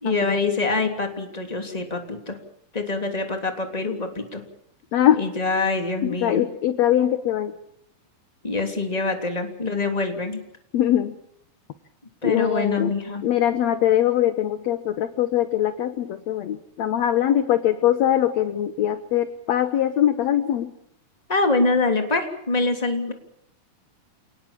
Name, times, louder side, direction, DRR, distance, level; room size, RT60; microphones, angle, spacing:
voice 1, 0.0-2.4 2.7-4.4 5.1-6.4 8.4-10.4 12.2-13.2 21.3-23.1, left 3 dB, 10° left, 5 dB, 2.7 m, -25 dB
voice 2, 4.9-5.2 6.0-7.5 10.7-11.1 12.2-12.9 13.2-20.7, left 11 dB, 65° left, 11 dB, 1.9 m, -22 dB
28.5 x 19.5 x 7.4 m, 0.73 s
omnidirectional pair, 4.2 m